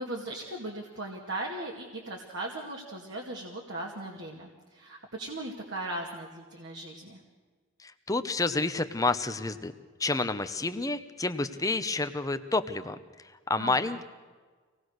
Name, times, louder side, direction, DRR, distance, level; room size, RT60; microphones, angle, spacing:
voice 1, 0.0-7.2 13.6-13.9, right 1 dB, 60° right, -1 dB, 2.3 m, -38 dB
voice 2, 7.8-9.7 10.0-14.0, left 3 dB, 15° left, 9 dB, 0.9 m, -29 dB
25.5 x 18.5 x 6.5 m, 1.4 s
head